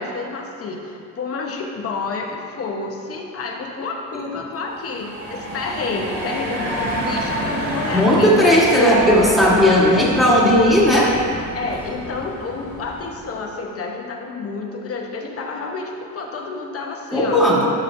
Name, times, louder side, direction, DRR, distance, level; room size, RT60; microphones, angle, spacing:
voice 1, 0.0-8.6 11.5-17.4, left 4 dB, 45° left, 1 dB, 0.9 m, -29 dB
sound 1, 4.7-13.4, right 1 dB, 60° right, 1.8 m, -29 dB
voice 2, 7.9-11.1 17.1-17.7, left 1 dB, ahead, -6 dB, 1.5 m, -15 dB
11.5 x 6.3 x 2.6 m, 2.6 s
cardioid pair, 140°, 32 cm